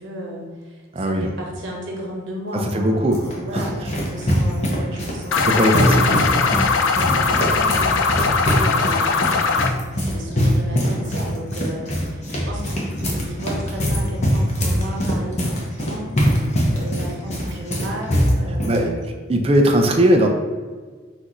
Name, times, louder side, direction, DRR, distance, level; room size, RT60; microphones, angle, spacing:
voice 1, 0.0-5.6 6.4-9.2 9.9-16.2 16.7-19.1, equal, 75° right, -2 dB, 1.1 m, -34 dB
voice 2, 0.9-1.3 2.7-3.2 3.5-3.6 5.4-6.5 18.7-19.0 19.3-20.3, right 1 dB, 30° right, 3 dB, 0.4 m, -18 dB
sound 1, 2.7-18.8, equal, 35° left, 0.7 m, -23 dB
sound 2, 5.3-9.7, left 5 dB, 75° left, 0.4 m, -20 dB
5.9 x 2.6 x 3.0 m, 1.5 s
head